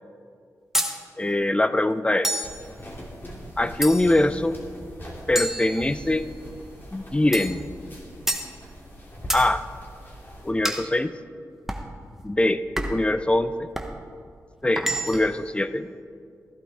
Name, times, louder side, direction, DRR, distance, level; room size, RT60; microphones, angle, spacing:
sound 1, 0.7-1.0 2.2-2.6 3.8-4.3 5.4-6.3 7.3-7.6 8.3-8.5 9.3-9.5 10.6-10.9 11.7-11.9 12.8-13.1 13.7-14.0 14.8-15.4, right 1 dB, 5° right, 1.0 m, -28 dB
voice 1, 1.2-2.5 3.6-4.6 5.3-6.3 6.9-7.6 9.3-9.6 10.4-11.1 12.2-12.6 12.9-13.7 14.6-15.9, left 1 dB, 15° left, 13 dB, 0.5 m, -23 dB
sound 2, 2.4-10.5, equal, 35° left, 2.5 m, -41 dB
15.0 x 11.5 x 3.6 m, 2.3 s
cardioid pair, 60°, 7 cm